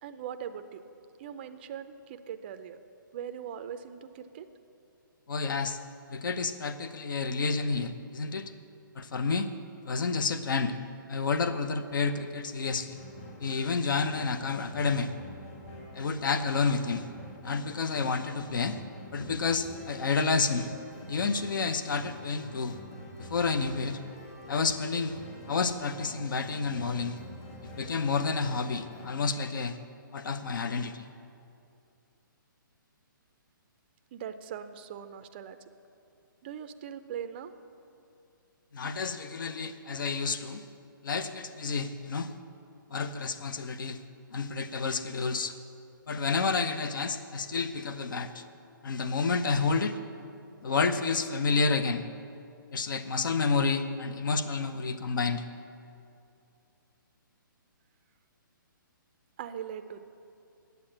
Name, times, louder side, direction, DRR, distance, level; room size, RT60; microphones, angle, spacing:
voice 1, 0.0-0.8 1.2-2.8 3.1-4.5 34.1-35.6 36.4-37.5 59.4-60.0, right 9 dB, 30° right, 9 dB, 0.4 m, -40 dB
voice 2, 5.3-5.8 6.1-8.5 9.0-9.5 9.9-10.7 11.1-13.0 13.4-15.1 15.9-17.1 17.4-18.8 19.1-20.7 21.1-22.8 23.2-24.0 24.5-25.2 25.5-27.2 27.8-29.8 30.1-31.0 38.7-40.6 41.0-42.3 42.9-44.0 44.3-45.5 46.1-48.4 48.8-49.9 50.6-52.0 52.7-55.4, left 4 dB, 65° left, 10 dB, 0.8 m, -29 dB
sound 1, 12.6-29.1, left 1 dB, 40° left, 2.4 m, -47 dB
9.6 x 8.1 x 8.6 m, 2.6 s
hypercardioid pair, 160°, 11 cm